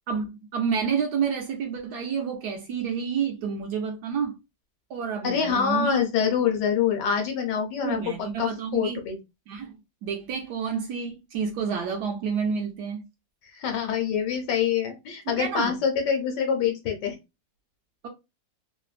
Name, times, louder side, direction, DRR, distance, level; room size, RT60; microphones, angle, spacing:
voice 1, 0.1-4.3 4.9-6.0 7.8-9.0 9.5-9.7 10.0-13.0 15.3-15.7, right 6 dB, 70° right, 1.0 m, -29 dB
voice 2, 5.2-8.0 8.4-9.2 13.5-17.1, left 7 dB, 70° left, 1.2 m, -25 dB
3.1 x 2.1 x 2.3 m
omnidirectional pair, 2.0 m